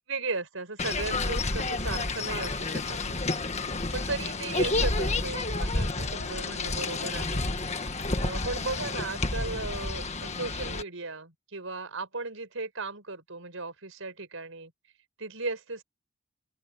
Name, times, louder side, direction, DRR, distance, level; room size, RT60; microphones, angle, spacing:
voice 1, 0.1-3.2 3.9-7.4 8.2-14.7 15.2-15.8, right 3 dB, 70° right, 5.1 m, -36 dB
sound 1, 0.8-10.8, left 3 dB, 30° left, 1.6 m, -30 dB
open air
head